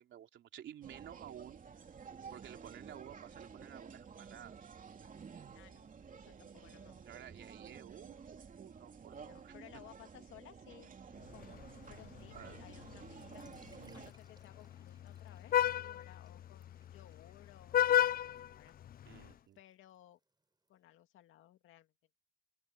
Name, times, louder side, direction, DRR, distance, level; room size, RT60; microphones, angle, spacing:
voice 1, 0.0-1.6 2.3-4.7 7.1-9.5 12.3-12.6 19.1-19.6, right 11 dB, 70° right, 3.2 m, -53 dB
sound 1, 0.8-14.1, right 6 dB, 40° right, 3.0 m, -52 dB
voice 2, 5.5-7.0 9.1-10.9 11.3-13.5 13.9-17.8 18.1-18.7 19.5-20.2 20.7-21.9, left 13 dB, 85° left, 2.2 m, -59 dB
Vehicle horn car horn honking, 11.2-19.3, left 11 dB, 50° left, 0.5 m, -36 dB
sound 2, 13.1-20.7, right 3 dB, 20° right, 7.2 m, -71 dB
open air
cardioid pair, 90°, 20 cm